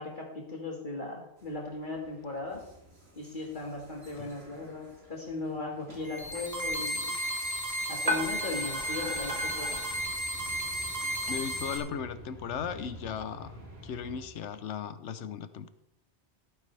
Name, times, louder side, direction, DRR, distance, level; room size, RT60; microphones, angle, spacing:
voice 1, 0.0-2.6 3.2-7.2 7.9-9.8, left 3 dB, 45° left, -2 dB, 1.9 m, -37 dB
sound 1, 1.4-14.3, right 1 dB, 60° right, 3.2 m, -51 dB
sound 2, 6.0-11.8, right 1 dB, 15° right, 1.6 m, -34 dB
sound 3, 6.2-11.4, left 1 dB, 30° right, 3.4 m, -38 dB
voice 2, 11.3-13.6 13.8-15.7, left 7 dB, 80° left, 12 dB, 1.1 m, -37 dB
17.0 x 9.4 x 3.3 m, 0.85 s
omnidirectional pair, 1.2 m